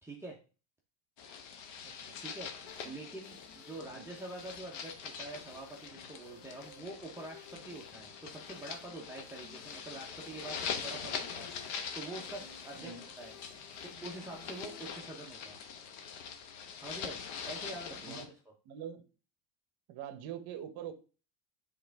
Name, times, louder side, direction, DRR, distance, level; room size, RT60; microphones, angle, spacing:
voice 1, 0.0-0.4 2.2-2.5 2.8-12.9 13.2-13.3 13.8-15.6 16.0-16.1 16.8-18.3, right 2 dB, 5° right, -2 dB, 0.8 m, -46 dB
sound 1, 1.2-18.2, left 6 dB, 60° left, 1.2 m, -43 dB
voice 2, 1.8-2.2 3.9-4.1 10.9-11.3 12.8-13.0 17.9-18.3 18.7-19.0 19.9-20.9, right 9 dB, 50° right, 10 dB, 1.0 m, -45 dB
sound 2, 2.7-15.7, left 5 dB, 90° left, 2.5 m, -58 dB
7.7 x 3.7 x 3.5 m, 0.35 s
cardioid pair, 135°, 49 cm